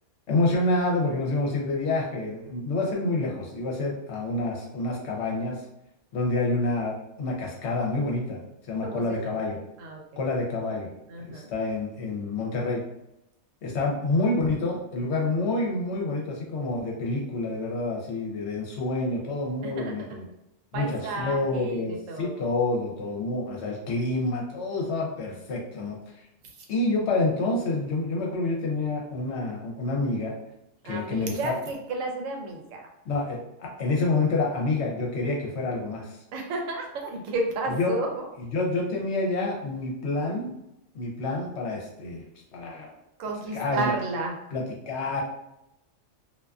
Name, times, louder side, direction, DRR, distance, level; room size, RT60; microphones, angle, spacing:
voice 1, 0.3-5.6 6.1-8.4 8.7-9.6 10.2-10.9 11.3-12.8 13.6-20.3 20.7-26.0 26.7-30.3 30.8-31.5 33.1-36.2 37.7-38.0 38.4-40.5 40.9-42.2 42.5-42.9 43.5-43.9 44.5-45.2, left 2 dB, 65° left, -1 dB, 0.8 m, -28 dB
voice 2, 8.8-9.3 9.8-10.2 11.1-11.5 19.6-19.9 20.7-22.5 30.8-32.9 36.3-38.3 43.2-44.3, right 2 dB, 85° right, 2 dB, 1.0 m, -32 dB
2.4 x 2.4 x 2.3 m, 0.84 s
omnidirectional pair, 1.3 m